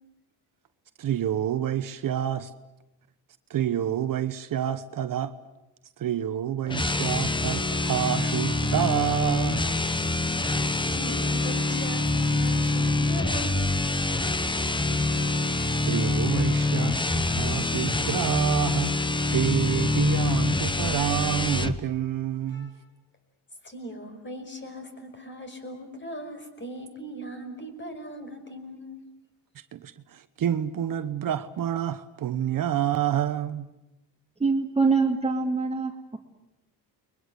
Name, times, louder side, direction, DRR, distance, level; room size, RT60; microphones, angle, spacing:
voice 1, 1.0-2.5 3.5-5.3 6.0-9.7 14.9-15.4 15.8-18.9 19.3-22.7 29.7-33.7, right 10 dB, 50° right, 1.1 m, -28 dB
sound 1, 6.7-21.8, left 2 dB, 10° left, 0.9 m, -25 dB
voice 2, 10.9-13.8 22.5-22.8 23.6-29.0, equal, 25° left, 5.5 m, -39 dB
voice 3, 34.4-36.2, right 4 dB, 15° right, 1.8 m, -24 dB
30.0 x 22.5 x 8.2 m
cardioid pair, 130°, 41 cm